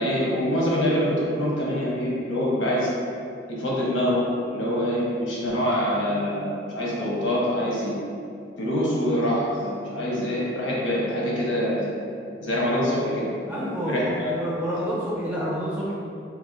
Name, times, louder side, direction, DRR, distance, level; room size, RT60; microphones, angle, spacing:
voice 1, 0.0-2.9 3.5-7.9 8.6-11.9 12.4-13.3 13.8-14.3, equal, 90° left, -5 dB, 1.0 m, -25 dB
voice 2, 13.5-15.9, equal, 5° right, -8 dB, 0.6 m, -28 dB
2.9 x 2.8 x 3.9 m, 2.4 s
head